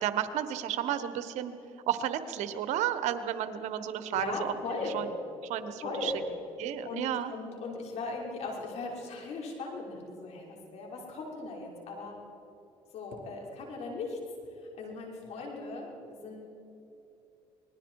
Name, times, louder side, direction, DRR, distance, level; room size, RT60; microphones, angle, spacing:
voice 1, 0.0-1.5 1.9-4.5 4.9-5.1 5.4-6.1 6.6-7.3, right 11 dB, 75° right, 11 dB, 1.3 m, -32 dB
voice 2, 4.1-5.0 5.8-6.2 6.8-12.1 12.9-14.2 14.5-16.5, left 3 dB, 65° left, -1 dB, 5.5 m, -38 dB
27.0 x 20.5 x 4.8 m, 2.9 s
supercardioid pair, 75°, 12 cm